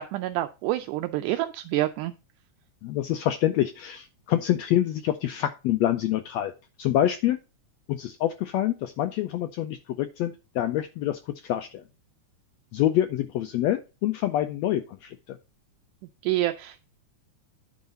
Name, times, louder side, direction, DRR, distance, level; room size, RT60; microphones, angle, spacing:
voice 1, 0.0-2.1 16.2-16.8, right 15 dB, 80° right, 9 dB, 2.0 m, -27 dB
voice 2, 2.8-6.5 6.8-7.4 7.9-11.8 12.7-15.4, left 12 dB, 85° left, 9 dB, 1.5 m, -26 dB
9.5 x 4.8 x 5.2 m, 0.30 s
omnidirectional pair, 3.7 m